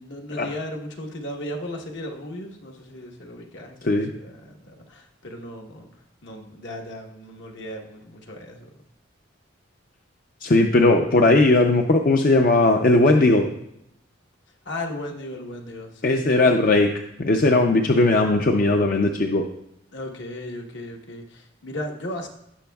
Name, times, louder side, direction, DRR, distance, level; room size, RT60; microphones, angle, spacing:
voice 1, 0.0-5.9 6.2-8.7 14.6-16.3 19.9-22.3, left 1 dB, 70° left, 1 dB, 1.2 m, -36 dB
voice 2, 10.4-13.5 16.0-16.9 17.2-19.4, left 2 dB, 45° left, 3 dB, 0.5 m, -18 dB
17.0 x 6.1 x 2.3 m, 0.78 s
head